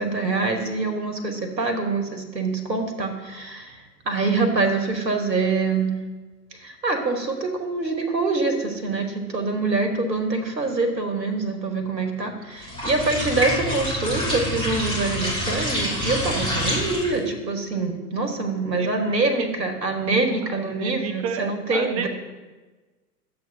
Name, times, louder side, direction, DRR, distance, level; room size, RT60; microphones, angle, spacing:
voice 1, 0.0-5.9 6.5-22.1, right 3 dB, 85° right, 4 dB, 1.2 m, -25 dB
sound 1, 12.6-17.3, left 1 dB, 10° left, 2.8 m, -27 dB
voice 2, 18.8-19.5 20.5-22.1, right 6 dB, 25° right, 6 dB, 0.4 m, -32 dB
10.5 x 7.6 x 2.7 m, 1.2 s
figure-of-eight pair, 95°, 49 cm